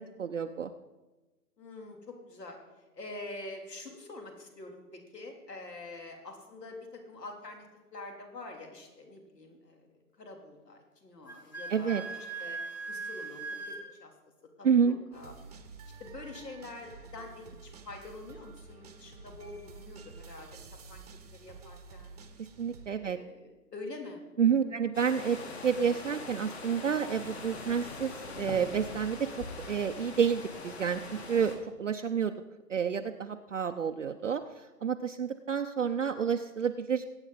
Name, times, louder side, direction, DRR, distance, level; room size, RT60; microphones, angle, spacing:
voice 1, 0.2-0.7 11.7-12.0 14.6-15.0 22.6-23.2 24.4-25.4 25.6-29.2 29.7-31.0 31.3-32.3 32.7-34.4 34.8-37.1, right 7 dB, 50° right, 5 dB, 0.6 m, -29 dB
voice 2, 1.6-2.6 3.0-7.7 7.9-9.9 10.2-12.1 12.4-12.6 12.9-13.4 13.7-14.1 14.6-15.3 15.8-21.0 21.3-22.2 22.9-24.2 24.6-24.7, left 2 dB, 75° left, 3 dB, 3.5 m, -46 dB
Wind instrument woodwind instrument, 11.2-13.8, right 4 dB, 15° left, 0.9 m, -39 dB
sound 1, 15.1-22.9, right 4 dB, 25° right, 0.9 m, -50 dB
sound 2, 24.9-31.6, left 3 dB, 40° left, 2.1 m, -42 dB
20.5 x 8.8 x 4.1 m, 1.1 s
hypercardioid pair, 160°, 49 cm